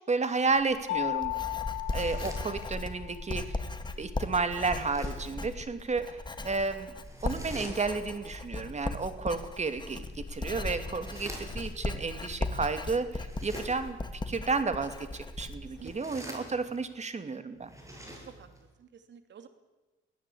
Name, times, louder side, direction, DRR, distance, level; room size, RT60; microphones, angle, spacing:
voice 1, 0.1-1.3 1.9-3.6 4.0-6.9 7.2-17.7, right 4 dB, 35° right, 10 dB, 2.6 m, -32 dB
Writing, 0.6-16.0, left 2 dB, 20° left, 2.1 m, -37 dB
Mallet percussion, 0.9-3.4, left 21 dB, 80° left, 1.1 m, -35 dB
sound 1, 1.8-3.0 4.5-5.4 7.0-8.2 10.0-11.8 13.2-14.0 15.6-16.9 17.6-18.6, equal, 15° right, 7.6 m, -47 dB
voice 2, 11.0-11.4 15.6-16.2 18.2-18.5 18.8-19.5, right 7 dB, 65° right, 9 dB, 2.8 m, -51 dB
23.0 x 16.0 x 8.6 m, 1.2 s
cardioid pair, 85°, 20 cm